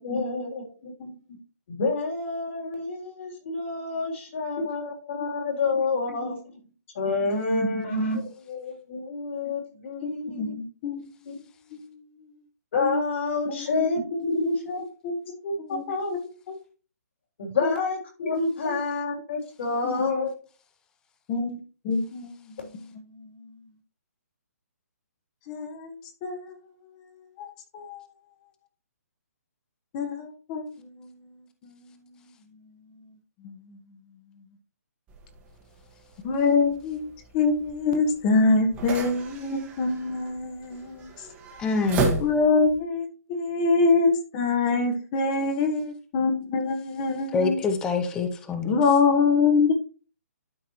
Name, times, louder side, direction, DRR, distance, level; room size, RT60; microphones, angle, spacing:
voice 1, 0.0-0.9 1.7-6.4 6.9-10.5 11.2-11.3 12.7-14.8 15.4-16.1 16.5-16.6 17.4-20.3, left 3 dB, 50° left, 3.3 m, -28 dB
voice 2, 1.0-1.4 6.2-6.4 7.3-7.6 10.0-11.0 11.7-11.8 13.5-13.9 14.2-14.5 15.0-15.1 15.7-15.8 16.1-16.2 17.6-17.7 18.6-18.8 19.8-20.3 21.3-21.6 21.8-22.6 23.2-23.3 25.5-26.6 27.4-28.1 29.9-31.9 33.4-33.8 36.2-41.1 42.2-47.6 48.6-49.7, left 4 dB, 25° left, 1.4 m, -25 dB
sound 1, 35.1-42.8, right 3 dB, 15° right, 1.4 m, -34 dB
voice 3, 41.6-42.2 47.3-48.7, left 4 dB, 10° left, 0.6 m, -26 dB
12.0 x 4.7 x 3.0 m
hypercardioid pair, 160°, 9 cm